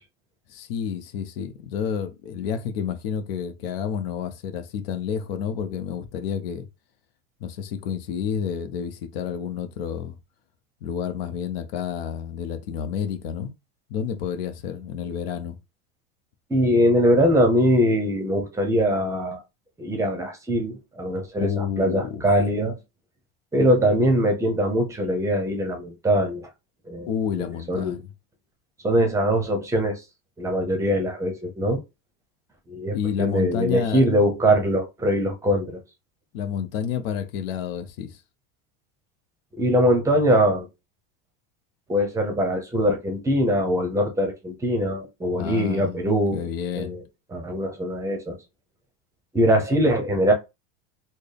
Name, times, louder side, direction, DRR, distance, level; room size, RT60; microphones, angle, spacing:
voice 1, 0.5-6.7 7.4-10.2 10.8-13.5 13.9-15.6 21.4-22.2 27.1-28.1 32.9-34.1 36.3-38.2 45.4-46.0 46.3-47.0, left 8 dB, 75° left, 0.7 m, -29 dB
voice 2, 16.5-19.4 19.8-22.8 23.5-26.5 26.9-27.1 27.3-28.0 28.8-30.0 30.4-31.8 32.7-35.8 39.6-40.7 41.9-46.4 46.8-47.0 47.3-48.4 49.3-50.3, equal, 10° right, 0.7 m, -22 dB
4.2 x 2.1 x 3.3 m
supercardioid pair, 145°, 30 cm